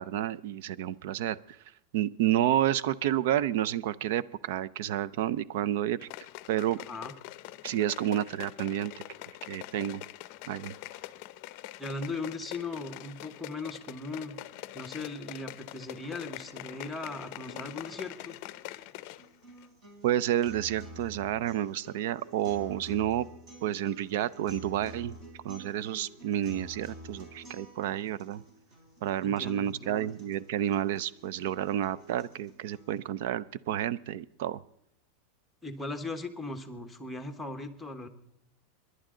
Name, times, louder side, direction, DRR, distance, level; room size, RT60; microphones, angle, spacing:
voice 1, 0.0-1.6 1.9-6.1 6.5-6.8 7.6-8.9 9.5-10.0 10.5-10.7 20.0-23.3 23.6-25.1 25.4-28.4 29.0-34.6, right 12 dB, 65° right, 19 dB, 0.5 m, -30 dB
sound 1, 6.0-19.3 19.6-19.7, left 16 dB, 50° left, 0.6 m, -44 dB
voice 2, 6.8-7.1 11.8-14.4 14.7-18.4 29.2-30.1 35.6-38.1, left 3 dB, 5° left, 6 dB, 1.2 m, -38 dB
sound 2, 17.0-33.0, right 1 dB, 30° right, 3.9 m, -50 dB
27.0 x 11.0 x 3.8 m, 0.78 s
supercardioid pair, 150°, 0 cm